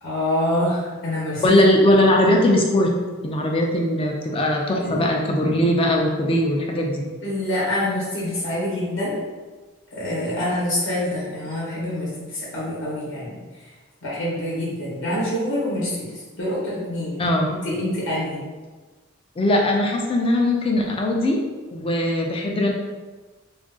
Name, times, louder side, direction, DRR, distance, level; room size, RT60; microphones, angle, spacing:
voice 1, 0.0-1.6 4.8-5.0 7.2-9.2 9.9-13.4 14.0-17.2 17.5-18.4, left 1 dB, 60° left, -8 dB, 0.8 m, -26 dB
voice 2, 1.4-2.9 3.2-7.0 17.2-17.5 19.4-21.4 21.7-22.7, left 1 dB, 25° left, 1 dB, 0.4 m, -20 dB
2.4 x 2.3 x 3.6 m, 1.3 s
head